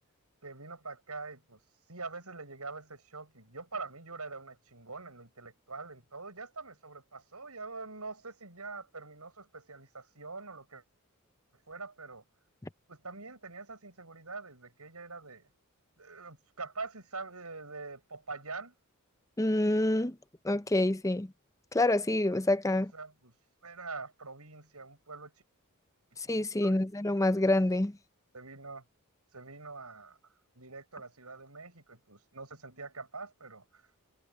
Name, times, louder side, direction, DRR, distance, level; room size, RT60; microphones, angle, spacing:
voice 1, 0.4-1.6 1.9-10.8 11.7-12.2 12.9-15.5 16.0-18.7 22.7-23.3 23.6-25.3 26.3-26.9 27.3-27.4 28.3-28.8 29.3-33.8, right 3 dB, 80° right, 7.4 m, -44 dB
voice 2, 19.4-20.2 20.4-21.3 21.7-22.9 26.2-28.0, left 1 dB, 15° left, 0.6 m, -27 dB
head